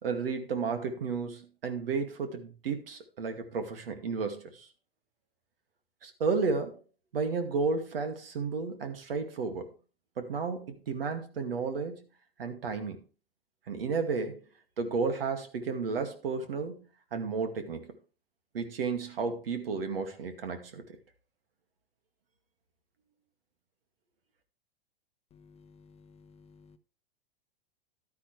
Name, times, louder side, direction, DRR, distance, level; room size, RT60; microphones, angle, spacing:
voice 1, 0.0-4.7 6.0-6.8 7.1-9.7 10.2-12.0 12.4-13.0 13.7-14.4 14.8-16.8 17.1-17.9 18.5-20.8, right 4 dB, 70° right, 2.3 m, -32 dB
voice 2, 25.3-26.8, left 5 dB, 20° left, 0.8 m, -57 dB
12.0 x 10.0 x 3.3 m
hypercardioid pair, 105°, 30 cm